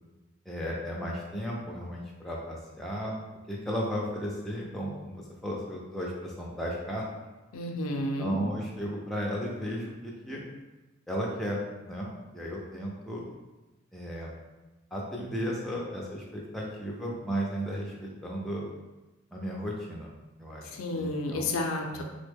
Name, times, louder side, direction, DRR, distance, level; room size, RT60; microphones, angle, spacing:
voice 1, 0.5-3.2 3.5-7.0 8.2-10.4 11.1-11.6 11.8-13.2 13.9-14.3 14.9-18.6 19.3-20.1 20.4-21.5 21.9-22.0, equal, ahead, -4 dB, 0.4 m, -34 dB
voice 2, 7.5-8.4 20.7-22.0, left 2 dB, 80° left, 3 dB, 0.4 m, -31 dB
3.3 x 2.1 x 3.4 m, 1.1 s
head